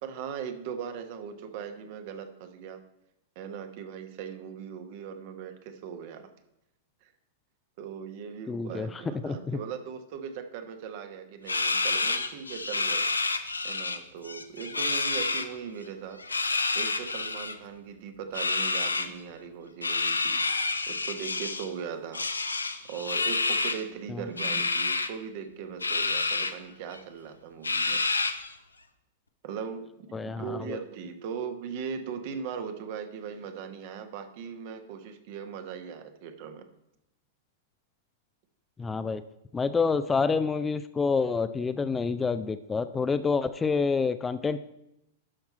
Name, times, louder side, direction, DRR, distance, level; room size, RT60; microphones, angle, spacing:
voice 1, 0.0-2.8 3.3-6.3 7.0-7.1 7.8-13.1 13.6-16.2 16.7-20.4 20.9-22.3 22.8-28.0 29.4-36.6, right 7 dB, 50° right, 7 dB, 1.2 m, -39 dB
voice 2, 8.5-8.9 9.2-9.6 24.1-24.2 30.1-30.8 38.8-39.2 39.5-44.6, left 4 dB, 15° left, 12 dB, 0.4 m, -28 dB
sound 1, 11.5-14.0 14.2-15.5 16.2-17.5 18.3-19.1 19.8-21.7 22.1-23.8 24.4-25.1 25.8-26.5 26.9-27.0 27.6-28.5, left 3 dB, 85° left, 0.7 m, -28 dB
11.5 x 5.8 x 4.3 m, 0.83 s
figure-of-eight pair, 100°, 0 cm